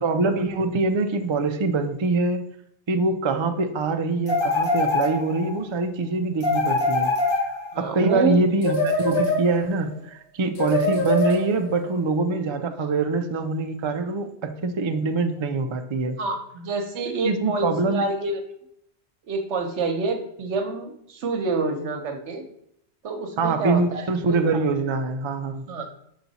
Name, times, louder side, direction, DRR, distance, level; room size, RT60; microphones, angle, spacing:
voice 1, 0.0-2.4 2.9-7.1 7.8-16.2 17.2-18.0 23.4-25.6, right 3 dB, 50° right, 6 dB, 0.3 m, -24 dB
sound 1, 4.3-5.5 6.4-7.9 8.6-9.8 10.6-11.8, left 2 dB, 50° left, 1.4 m, -24 dB
voice 2, 7.7-8.4 16.2-18.4 19.2-22.4 23.0-24.4 25.7-25.9, right 3 dB, 75° right, 6 dB, 1.1 m, -27 dB
5.8 x 4.1 x 4.0 m, 0.73 s
omnidirectional pair, 1.2 m